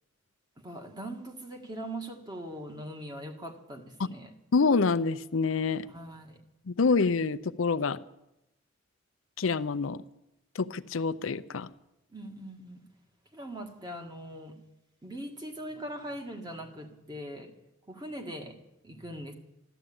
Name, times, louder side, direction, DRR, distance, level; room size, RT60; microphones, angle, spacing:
voice 1, 0.6-4.3 5.9-6.4 12.1-12.8 13.3-14.6 15.0-17.5 17.9-18.6 18.8-19.3, right 1 dB, 20° right, 4 dB, 1.8 m, -41 dB
voice 2, 4.5-5.9 6.7-8.0 9.4-10.0 10.5-11.7, left 4 dB, 85° left, 13 dB, 0.6 m, -26 dB
14.0 x 12.0 x 8.7 m, 0.91 s
head